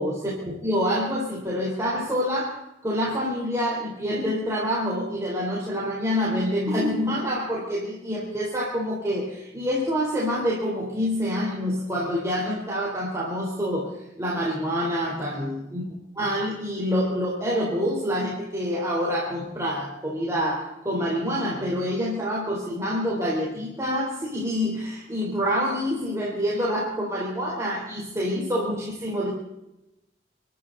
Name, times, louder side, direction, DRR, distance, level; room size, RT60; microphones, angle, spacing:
voice 1, 0.0-2.6 2.8-13.9 14.2-15.8 16.1-29.3, equal, 15° right, -6 dB, 4.3 m, -27 dB
27.5 x 12.5 x 4.1 m, 0.92 s
head